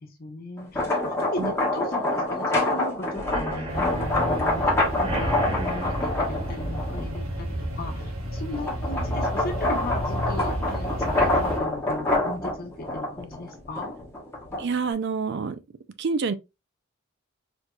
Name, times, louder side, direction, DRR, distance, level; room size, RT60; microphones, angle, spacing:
voice 1, 0.0-10.9 11.2-13.9, left 2 dB, 45° left, 1.2 m, -37 dB
sound 1, 0.6-7.2 7.7-14.9, left 2 dB, 10° left, 1.0 m, -27 dB
sound 2, 3.1-10.8 11.1-11.5 11.8-11.9 12.3-12.4, right 1 dB, 30° right, 1.1 m, -37 dB
sound 3, 3.7-11.6, equal, 75° right, 1.1 m, -31 dB
voice 2, 14.6-15.6 16.0-16.3, right 5 dB, 50° right, 0.4 m, -27 dB
4.3 x 2.7 x 2.3 m
head